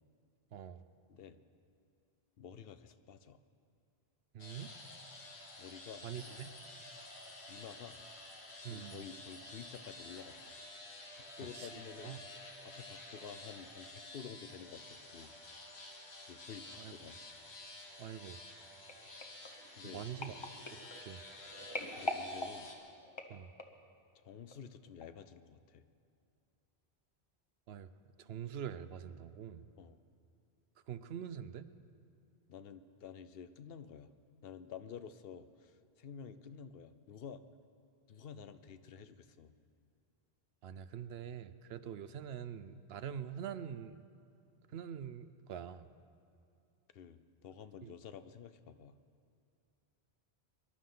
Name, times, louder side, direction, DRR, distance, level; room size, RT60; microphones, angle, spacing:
voice 1, 0.5-0.8 4.3-4.7 6.0-6.5 8.6-9.0 11.5-12.2 16.8-16.9 18.0-18.4 19.8-20.4 20.9-21.2 23.3-23.5 27.7-27.9 28.2-29.6 30.9-31.7 40.6-44.1 44.7-45.9 47.8-47.9, right 8 dB, 75° right, 13 dB, 0.8 m, -44 dB
voice 2, 2.4-3.4 5.6-6.4 7.5-8.0 8.6-10.5 11.1-12.2 12.6-15.6 16.3-17.2 19.8-20.1 22.0-22.7 24.2-25.8 29.8-30.0 32.5-34.1 34.4-37.4 38.1-39.5 46.9-49.0, left 7 dB, 70° left, 12 dB, 0.8 m, -51 dB
sound 1, 4.4-22.7, left 2 dB, 85° left, 1.8 m, -51 dB
sound 2, 18.9-23.9 24.5-24.7 25.0-25.1, left 2 dB, 30° left, 0.9 m, -44 dB
24.5 x 12.0 x 3.8 m, 2.5 s
omnidirectional pair, 1.1 m